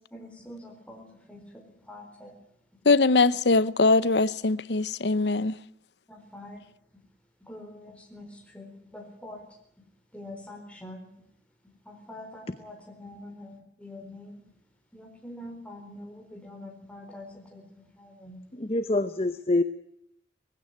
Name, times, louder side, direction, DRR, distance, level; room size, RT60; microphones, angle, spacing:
voice 1, 0.1-2.4 6.1-6.6 7.4-9.5 10.1-11.1 11.8-14.4 14.9-18.4, left 1 dB, 5° left, 4.1 m, -45 dB
voice 2, 2.8-5.6, left 3 dB, 75° left, 0.8 m, -22 dB
voice 3, 18.6-19.6, left 2 dB, 35° left, 0.8 m, -25 dB
19.5 x 16.0 x 10.0 m
head